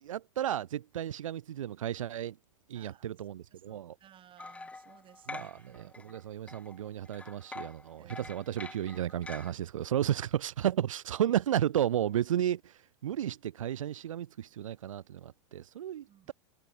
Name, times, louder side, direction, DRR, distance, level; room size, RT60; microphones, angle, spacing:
voice 1, 0.0-2.4 2.7-4.0 5.3-16.3, right 11 dB, 90° right, 0.4 m, -33 dB
voice 2, 2.7-3.2 3.5-6.2 8.0-8.4 16.1-16.3, right 10 dB, 30° right, 2.1 m, -59 dB
sound 1, 4.4-6.2 6.5-9.5, left 3 dB, 10° left, 0.7 m, -46 dB
hypercardioid pair, 105°, 16 cm